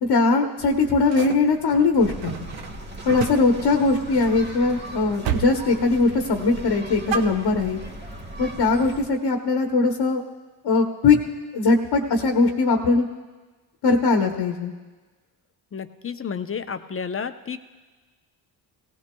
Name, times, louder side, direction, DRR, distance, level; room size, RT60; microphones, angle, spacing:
voice 1, 0.0-2.5 3.0-7.8 8.4-10.2 10.6-11.2 11.5-13.1 13.8-14.7, left 3 dB, 55° left, 3 dB, 1.2 m, -20 dB
sound 1, 0.6-4.8 5.2-5.6 5.9-6.3 6.7-7.9, right 8 dB, 65° right, 0.9 m, -33 dB
sound 2, 2.0-9.1, right 1 dB, 20° right, 1.6 m, -38 dB
voice 2, 15.7-17.6, left 6 dB, 30° left, 9 dB, 0.7 m, -31 dB
18.0 x 16.0 x 2.3 m, 1.3 s
supercardioid pair, 55°, 48 cm